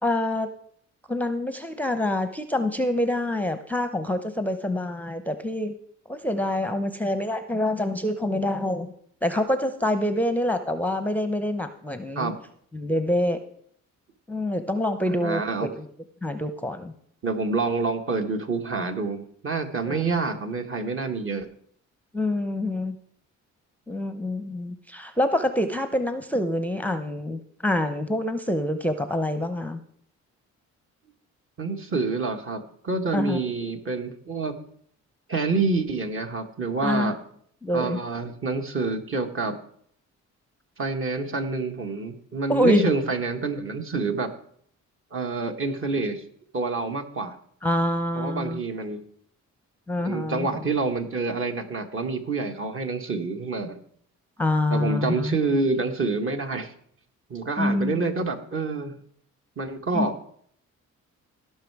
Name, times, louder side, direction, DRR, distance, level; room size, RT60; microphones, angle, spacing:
voice 1, 0.0-0.5 1.1-5.7 6.1-8.9 9.2-12.3 12.7-13.4 14.3-15.9 16.2-16.9 19.9-20.3 22.1-22.9 23.9-29.8 33.1-33.4 36.8-37.1 37.6-38.0 42.5-42.9 47.6-48.6 49.9-50.6 54.4-55.3 57.6-58.3 59.9-60.1, left 1 dB, 5° left, 9 dB, 0.7 m, -26 dB
voice 2, 15.1-15.7 17.2-21.5 31.6-34.5 35.3-37.2 37.7-39.6 40.8-44.3 45.1-46.2 46.5-47.3 48.1-49.0 50.0-53.8 54.7-56.7 57.3-58.9 59.6-60.1, right 3 dB, 45° right, 5 dB, 1.5 m, -27 dB
17.0 x 5.7 x 4.7 m, 0.64 s
cardioid pair, 90°, 30 cm